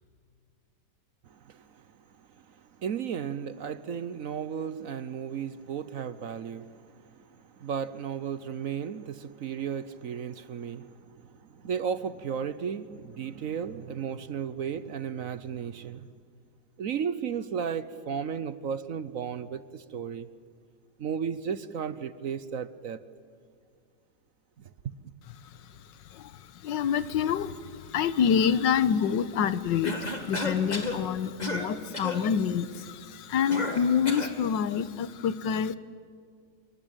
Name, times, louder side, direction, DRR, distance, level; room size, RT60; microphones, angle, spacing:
voice 1, 1.3-1.9 2.2-16.1 16.8-20.3 21.0-23.0 24.6-24.7 25.0-25.1, right 7 dB, 55° right, 1.1 m, -34 dB
voice 2, 26.6-35.8, left 7 dB, 85° left, 1.7 m, -27 dB
Cough, 29.8-31.0 31.4-31.7 31.9-32.2 33.5-34.4, left 2 dB, 25° left, 2.1 m, -32 dB
26.5 x 23.5 x 9.0 m
omnidirectional pair, 1.9 m